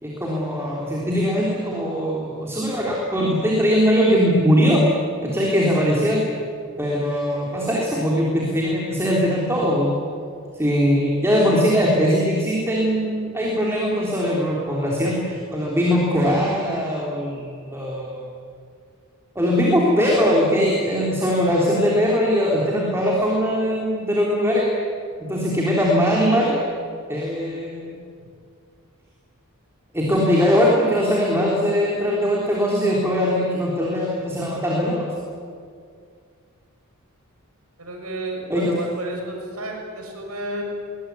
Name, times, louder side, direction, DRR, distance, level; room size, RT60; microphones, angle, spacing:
voice 1, 0.0-4.8 5.2-6.2 6.8-9.9 10.5-18.3 19.4-24.7 25.3-26.6 27.1-28.0 29.9-35.4 38.5-38.7, equal, 10° right, -4 dB, 3.6 m, -21 dB
voice 2, 37.8-40.6, right 2 dB, 80° right, 1 dB, 6.3 m, -31 dB
22.5 x 20.5 x 9.5 m, 2.3 s
head